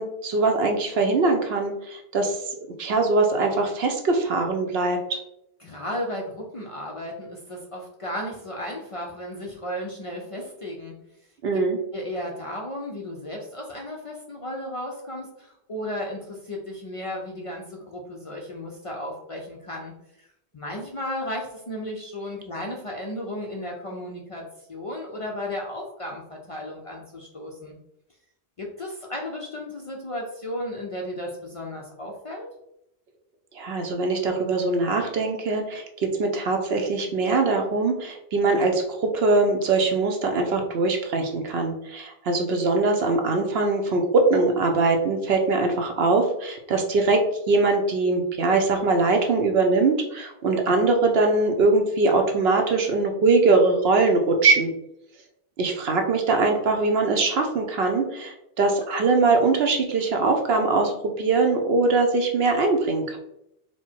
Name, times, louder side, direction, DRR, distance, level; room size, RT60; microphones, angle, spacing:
voice 1, 0.0-2.4 2.8-5.2 11.4-11.8 33.5-47.2 47.5-54.7 55.6-63.2, right 3 dB, 70° right, 4 dB, 0.9 m, -22 dB
voice 2, 5.6-11.0 11.9-20.3 20.5-27.8 28.6-32.5, left 1 dB, 40° left, -1 dB, 0.5 m, -34 dB
4.3 x 2.1 x 4.4 m, 0.80 s
omnidirectional pair, 1.1 m